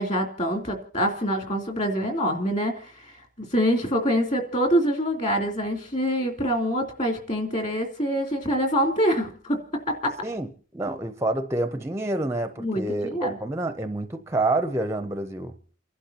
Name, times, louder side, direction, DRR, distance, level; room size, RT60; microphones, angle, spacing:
voice 1, 0.0-9.6 9.9-10.1 12.6-13.4, equal, 35° left, 2.9 m, -25 dB
voice 2, 10.2-15.5, right 2 dB, 15° right, 0.6 m, -28 dB
30.0 x 11.5 x 2.8 m
head